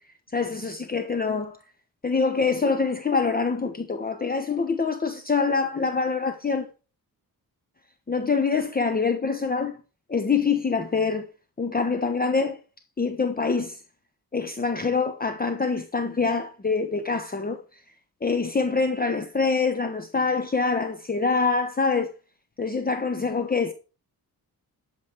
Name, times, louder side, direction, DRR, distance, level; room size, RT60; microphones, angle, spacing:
voice 1, 0.3-1.6 2.0-6.7 8.1-9.8 10.1-11.3 11.6-12.6 13.0-13.8 14.3-17.6 18.2-22.1 22.6-23.7, left 4 dB, 25° left, 1.1 m, -25 dB
11.5 x 7.3 x 4.5 m
cardioid pair, 90°, 38 cm